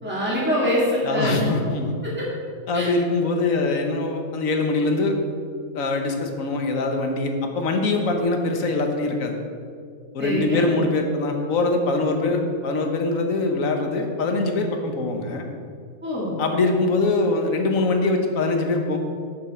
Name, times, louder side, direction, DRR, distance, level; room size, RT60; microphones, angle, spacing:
voice 1, 0.0-1.5 2.0-2.3 2.7-2.9 10.2-10.6 16.0-16.3, equal, 10° right, -7 dB, 2.3 m, -24 dB
voice 2, 1.0-1.9 2.7-5.2 5.7-9.4 10.1-15.4 16.4-19.0, left 3 dB, 75° left, 4 dB, 1.5 m, -23 dB
13.0 x 6.0 x 4.4 m, 2.2 s
omnidirectional pair, 1.4 m